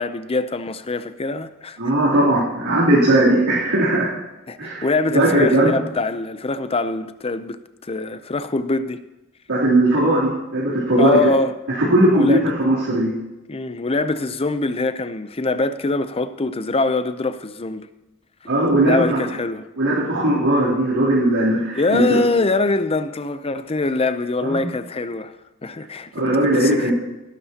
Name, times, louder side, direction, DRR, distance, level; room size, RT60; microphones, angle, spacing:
voice 1, 0.0-1.8 4.5-9.0 11.0-11.6 12.1-12.5 13.5-17.9 18.8-19.7 21.8-25.3 25.6-26.9, left 3 dB, 25° left, 0.6 m, -23 dB
voice 2, 1.8-4.1 4.6-5.7 9.5-11.2 11.8-13.1 18.5-19.2 19.8-22.2 24.4-24.6 26.1-26.9, right 1 dB, 85° right, 3.3 m, -18 dB
19.0 x 12.0 x 2.9 m
head